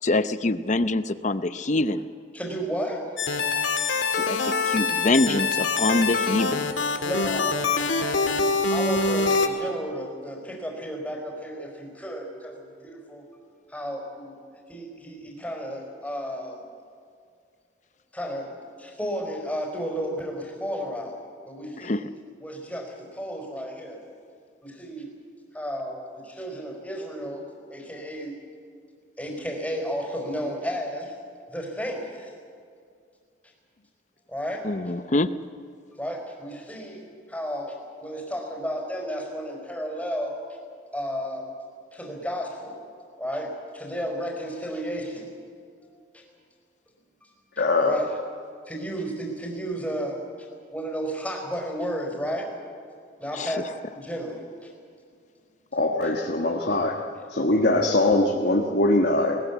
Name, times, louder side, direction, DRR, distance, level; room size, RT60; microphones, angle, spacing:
voice 1, 0.0-2.0 4.1-6.7 21.8-22.0 34.6-35.3 53.3-53.6, left 2 dB, 40° left, 12 dB, 0.7 m, -25 dB
voice 2, 2.3-3.2 3.9-4.4 7.0-7.6 8.7-13.3 13.7-14.4 14.7-16.6 18.1-21.2 21.4-22.1 22.4-24.0 24.6-25.1 25.5-28.4 29.2-31.2 31.5-32.3 34.3-34.7 35.9-40.4 40.9-41.5 41.9-42.8 43.2-45.3 46.1-46.3 47.2-47.3 47.8-48.1 48.7-52.6 53.2-54.7, equal, 5° left, 0 dB, 4.3 m, -33 dB
sound 1, 3.2-9.5, left 4 dB, 90° left, 1.9 m, -24 dB
voice 3, 47.6-48.0 55.7-57.0 57.3-59.4, left 2 dB, 55° left, 0 dB, 1.5 m, -22 dB
20.5 x 19.5 x 8.3 m, 2.2 s
head